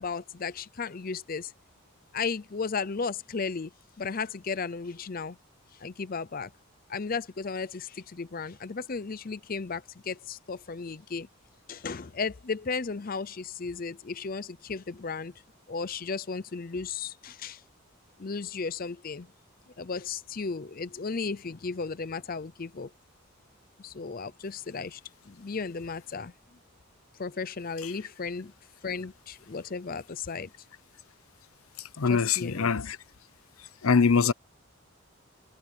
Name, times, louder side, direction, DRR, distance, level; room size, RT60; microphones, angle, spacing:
voice 1, 0.0-1.5 2.1-3.7 4.0-5.4 5.8-6.5 6.9-11.3 11.7-15.3 15.7-17.6 18.2-19.3 19.8-22.9 23.8-25.0 25.3-26.3 27.2-28.5 28.8-30.5 32.1-32.7, left 5 dB, 45° left, 0.6 m, -35 dB
voice 2, 31.8-33.0 33.6-34.3, left 5 dB, 85° left, 0.7 m, -24 dB
head